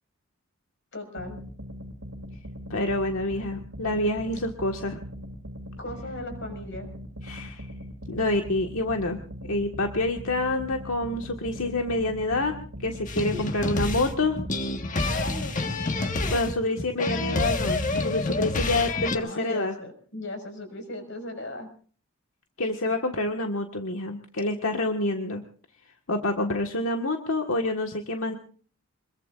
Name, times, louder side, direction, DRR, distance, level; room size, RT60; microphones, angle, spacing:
voice 1, 0.9-1.4 5.8-6.9 13.3-13.4 15.0-15.8 18.9-21.7, left 1 dB, 60° left, 6 dB, 5.6 m, -37 dB
sound 1, 1.2-14.8, equal, 85° right, 2.5 m, -40 dB
voice 2, 2.7-5.0 7.2-7.6 8.1-9.2 9.5-12.5 12.8-14.4 16.3-19.7 22.6-25.4 26.1-28.3, left 2 dB, 80° left, 3 dB, 1.6 m, -27 dB
sound 2, 13.1-19.2, left 2 dB, 35° left, 1.4 m, -28 dB
26.5 x 21.5 x 2.5 m, 0.43 s
head